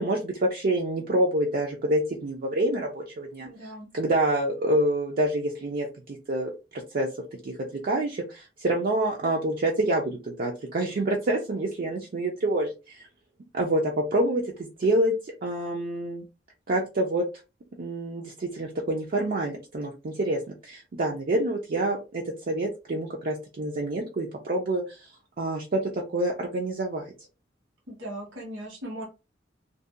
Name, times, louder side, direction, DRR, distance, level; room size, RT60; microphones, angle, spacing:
voice 1, 0.0-3.5 3.9-5.9 6.3-6.5 6.9-7.1 7.4-7.5 7.8-13.0 13.5-14.4 14.8-16.2 16.7-17.2 17.8-25.1 25.4-27.0, right 1 dB, 50° right, 0 dB, 0.4 m, -27 dB
voice 2, 3.4-3.9 27.9-29.1, right 1 dB, 85° right, -3 dB, 1.3 m, -38 dB
2.6 x 2.2 x 2.3 m, 0.29 s
head